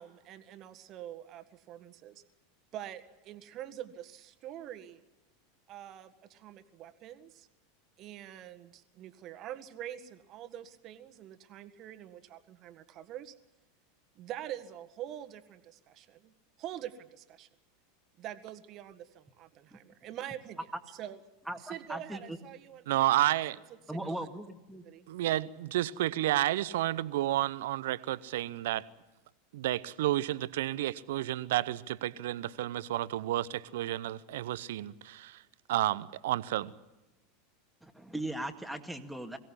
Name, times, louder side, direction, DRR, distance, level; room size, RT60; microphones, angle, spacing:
voice 1, 0.0-2.2 2.7-5.1 5.7-7.5 8.0-13.4 14.2-16.3 16.6-17.5 18.2-21.2 21.6-23.4 23.7-24.3 24.8-25.1, right 11 dB, 45° right, 1.6 m, -45 dB
voice 2, 21.5-22.2 23.9-24.8 37.8-39.4, right 1 dB, 5° right, 2.0 m, -38 dB
voice 3, 22.9-23.6 25.1-28.8 29.5-35.4 35.7-36.7, right 14 dB, 65° right, 0.8 m, -31 dB
22.5 x 17.0 x 10.0 m
figure-of-eight pair, 85°, 0 cm